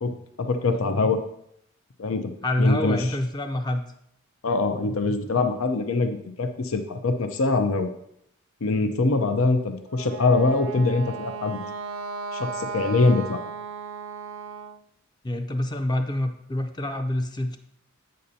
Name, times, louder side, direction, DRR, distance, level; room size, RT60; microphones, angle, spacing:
voice 1, 0.0-1.2 2.0-2.3 2.6-3.0 4.4-7.9 8.6-11.6 12.3-13.4, left 3 dB, 90° left, 7 dB, 0.6 m, -23 dB
voice 2, 2.4-3.8 15.2-17.6, left 1 dB, 20° left, 6 dB, 0.5 m, -26 dB
Wind instrument woodwind instrument, 9.9-14.8, right 4 dB, 70° right, 0.4 m, -35 dB
7.7 x 6.4 x 2.8 m, 0.73 s
head